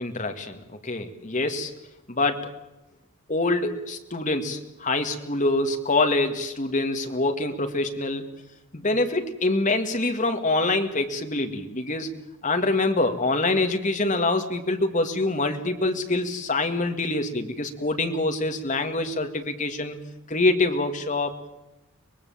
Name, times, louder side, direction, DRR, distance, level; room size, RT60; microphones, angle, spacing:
voice 1, 0.0-1.7 2.1-2.5 3.3-8.3 8.7-12.1 12.4-20.0 20.3-21.3, left 2 dB, 35° left, 6 dB, 2.0 m, -25 dB
24.0 x 21.0 x 7.2 m, 0.96 s
head